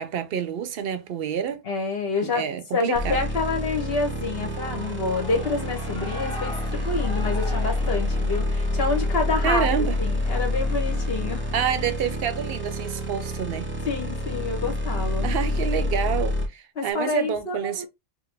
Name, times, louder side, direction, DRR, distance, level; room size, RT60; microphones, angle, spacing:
voice 1, 0.0-1.6 2.2-3.2 9.4-10.0 11.5-13.7 15.2-17.8, right 8 dB, 60° right, 0.7 m, -28 dB
voice 2, 1.6-2.4 2.7-9.7 10.0-11.4 13.8-15.3 16.8-17.9, left 3 dB, 60° left, 1.2 m, -28 dB
sound 1, 2.9-16.5, left 1 dB, 10° right, 0.7 m, -27 dB
Shout / Cheering, 4.1-11.8, left 1 dB, 5° left, 1.2 m, -42 dB
4.7 x 2.1 x 3.3 m
omnidirectional pair, 1.2 m